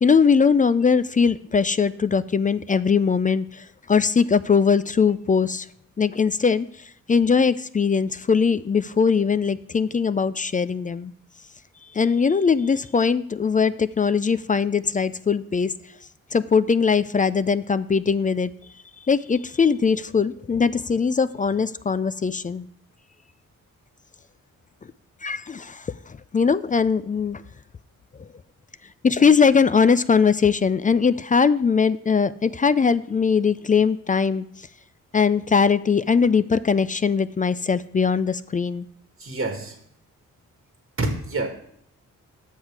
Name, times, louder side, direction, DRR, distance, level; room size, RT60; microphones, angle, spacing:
voice 1, 0.0-5.7 6.0-6.7 7.1-11.1 11.9-15.7 16.3-18.5 19.1-22.7 25.2-27.4 29.0-34.4 35.1-38.8, left 5 dB, 25° left, 14 dB, 0.3 m, -20 dB
voice 2, 39.2-39.8 41.0-41.5, right 2 dB, 40° right, 3 dB, 1.4 m, -27 dB
7.8 x 6.4 x 4.7 m, 0.69 s
cardioid pair, 55°, 34 cm